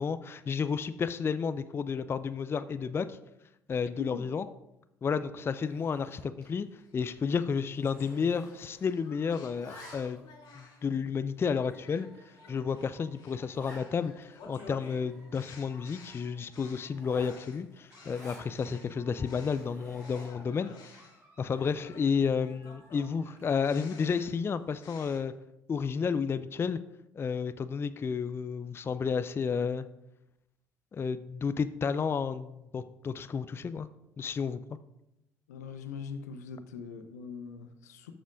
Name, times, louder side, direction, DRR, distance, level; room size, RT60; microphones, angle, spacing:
voice 1, 0.0-3.2 3.7-4.4 5.0-6.7 6.9-10.2 10.6-12.1 12.5-20.7 21.4-25.3 25.7-26.8 27.2-29.9 30.9-33.9 34.2-34.6, left 6 dB, 25° left, 13 dB, 0.4 m, -31 dB
Zipper (clothing), 5.5-6.6 6.9-7.1 7.3-9.0 9.3-10.3 10.9-11.0 11.6-11.7 12.1-12.2 12.5-12.6 12.8-12.9 13.5-13.9 14.3-14.4 14.6-15.9 16.9-18.5 19.1-20.5, equal, 90° right, 2.8 m, -52 dB
sound 1, 6.8-10.9 11.4-19.7 20.0-25.2, left 4 dB, 55° left, 1.9 m, -54 dB
Dog / Alarm, 11.7-17.6 17.9-20.6 20.9-23.6, right 1 dB, 25° right, 2.8 m, -61 dB
voice 2, 35.5-38.1, left 6 dB, 75° left, 8 dB, 0.7 m, -41 dB
13.5 x 7.1 x 2.4 m, 0.86 s
figure-of-eight pair, 50°, 9 cm